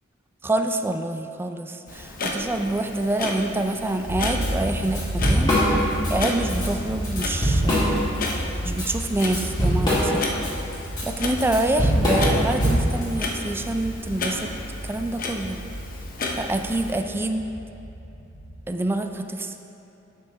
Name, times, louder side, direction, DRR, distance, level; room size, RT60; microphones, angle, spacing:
voice 1, 0.4-5.6 6.1-8.0 8.6-10.4 11.0-14.5 14.8-15.6 16.4-17.5 18.7-19.6, right 2 dB, 10° right, 6 dB, 0.3 m, -26 dB
Clock, 1.9-17.0, left 2 dB, 45° left, 0.7 m, -34 dB
sound 1, 4.1-18.6, equal, 85° left, 1.8 m, -33 dB
Drum kit / Drum, 4.4-4.5 4.8-6.1 6.5-6.7 7.0-8.3 8.7-13.0, equal, 20° left, 1.9 m, -22 dB
8.5 x 6.2 x 3.9 m, 2.8 s
head